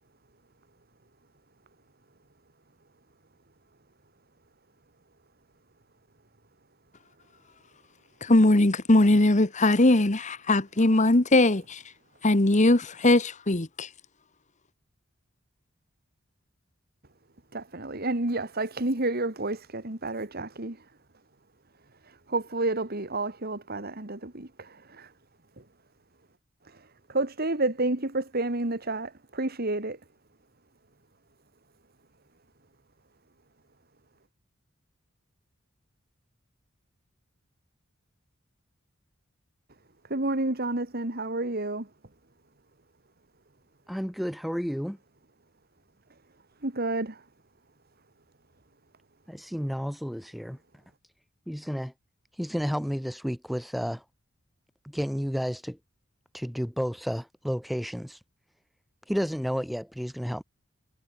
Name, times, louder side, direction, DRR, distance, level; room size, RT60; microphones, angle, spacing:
voice 1, 8.2-11.8 12.2-13.9, left 2 dB, 40° left, 1.4 m, -20 dB
voice 2, 17.5-20.8 22.3-25.1 26.7-26.8 27.1-30.0 40.1-41.9 46.6-47.2, right 2 dB, 50° right, 2.4 m, -30 dB
voice 3, 43.9-45.0 49.3-50.6 51.5-51.9 52.4-54.0 54.8-55.8 56.3-58.2 59.1-60.4, equal, ahead, 4.0 m, -31 dB
head